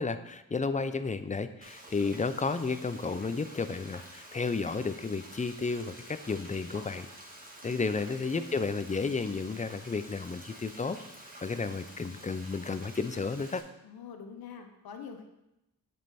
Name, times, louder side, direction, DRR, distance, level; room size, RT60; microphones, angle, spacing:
voice 1, 0.0-7.1 7.6-11.0 11.4-13.7, left 4 dB, 20° left, 11 dB, 0.5 m, -32 dB
Frying (food), 1.6-13.6, right 1 dB, 25° right, 1.8 m, -49 dB
voice 2, 7.6-8.1 13.8-15.3, left 6 dB, 80° left, 5 dB, 0.9 m, -45 dB
7.4 x 5.5 x 4.3 m, 0.90 s
cardioid pair, 60°, 36 cm